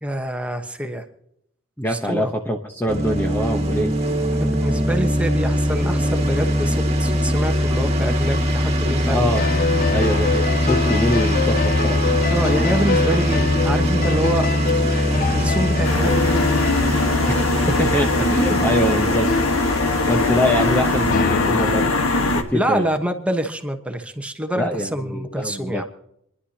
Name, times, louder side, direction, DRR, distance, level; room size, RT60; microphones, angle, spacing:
voice 1, 0.0-1.0 1.9-2.3 4.4-9.3 12.3-14.5 15.1-16.1 22.5-25.8, right 1 dB, 5° right, 5 dB, 1.2 m, -26 dB
voice 2, 1.8-3.9 9.1-9.4 9.9-12.0 17.7-19.3 20.1-22.9 24.5-25.8, left 1 dB, 10° left, 2 dB, 1.0 m, -23 dB
sound 1, 2.9-21.1, equal, 30° right, 2.1 m, -22 dB
sound 2, 9.3-21.9, left 5 dB, 45° left, 0.4 m, -25 dB
sound 3, 15.8-22.4, left 2 dB, 85° left, 1.5 m, -21 dB
28.0 x 11.5 x 2.9 m, 0.73 s
head